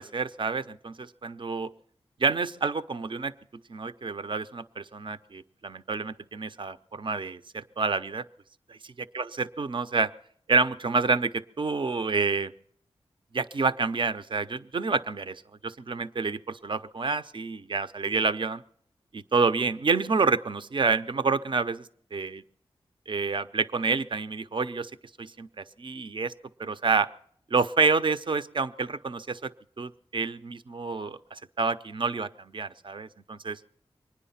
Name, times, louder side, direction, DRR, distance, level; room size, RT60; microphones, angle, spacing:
voice 1, 0.0-1.7 2.2-3.3 3.7-8.2 8.7-8.8 9.1-10.1 10.5-12.5 13.3-18.6 19.1-21.9 22.1-22.4 23.1-24.9 25.2-26.3 26.6-27.1 27.5-29.5 29.8-33.6, right 4 dB, 50° right, 12 dB, 0.6 m, -28 dB
24.5 x 9.9 x 5.7 m, 0.63 s
wide cardioid pair, 65°, 10 cm